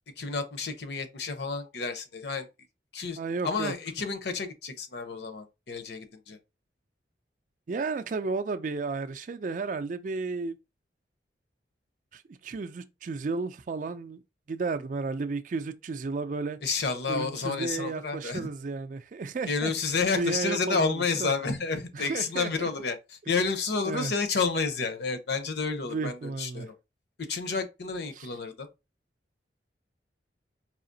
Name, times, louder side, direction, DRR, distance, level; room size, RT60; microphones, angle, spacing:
voice 1, 0.2-2.5 2.9-3.2 3.4-6.4 16.6-18.5 19.5-26.7 27.3-28.7, left 4 dB, 65° left, 0.8 m, -30 dB
voice 2, 3.2-3.7 7.7-10.6 12.1-14.2 14.5-16.6 17.1-19.7 20.1-21.3 21.9-22.7 23.8-24.1 25.8-26.7 28.2-28.3, right 4 dB, 45° right, 0.3 m, -33 dB
4.9 x 2.8 x 2.7 m
head